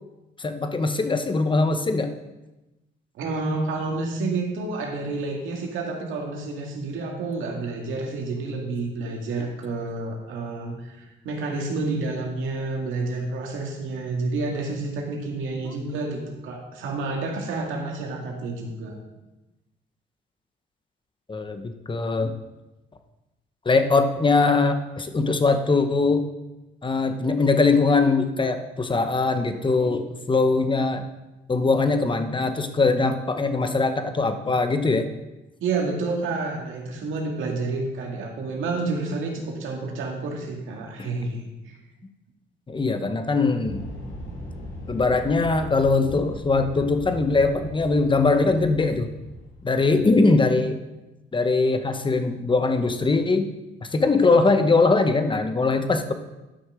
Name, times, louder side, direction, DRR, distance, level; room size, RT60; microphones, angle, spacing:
voice 1, 0.4-2.1 15.6-15.7 21.3-22.3 23.6-26.3 26.8-31.0 31.5-35.1 41.0-41.1 42.7-43.8 44.9-49.1 49.6-50.8 51.3-53.5 53.8-56.1, left 3 dB, 25° left, 8 dB, 1.0 m, -21 dB
voice 2, 3.2-19.0 35.6-41.8, right 3 dB, 85° right, 0 dB, 2.1 m, -29 dB
sound 1, 43.6-50.1, left 1 dB, 85° left, 3.1 m, -39 dB
11.5 x 6.1 x 4.9 m, 1.0 s
cardioid pair, 90°, 20 cm